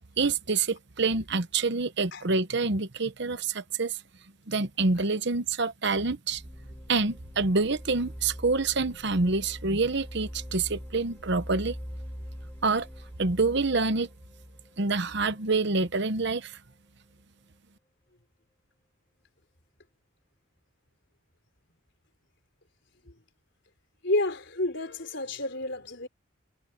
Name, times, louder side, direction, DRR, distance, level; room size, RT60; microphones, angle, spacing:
voice 1, 0.2-4.0 4.5-6.4 6.9-11.8 12.6-12.9 13.2-14.1 14.8-16.6, right 3 dB, 55° right, 1.0 m, -27 dB
sound 1, 6.3-16.1, equal, 10° left, 6.0 m, -43 dB
voice 2, 24.0-26.1, left 2 dB, 60° left, 4.8 m, -30 dB
head